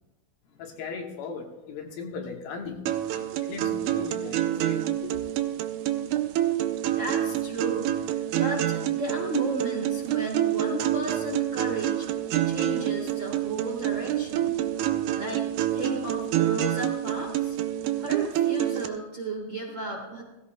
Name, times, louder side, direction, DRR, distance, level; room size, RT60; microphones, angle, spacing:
voice 1, 0.6-2.8 3.1-5.2, left 5 dB, 80° left, 2 dB, 3.2 m, -38 dB
sound 1, 2.9-18.9, right 12 dB, 85° right, 1.7 m, -27 dB
voice 2, 6.9-12.1 12.4-14.5 15.1-17.5 18.0-20.2, right 2 dB, 50° right, -1 dB, 1.5 m, -34 dB
16.5 x 16.0 x 2.2 m, 1.0 s
omnidirectional pair, 4.3 m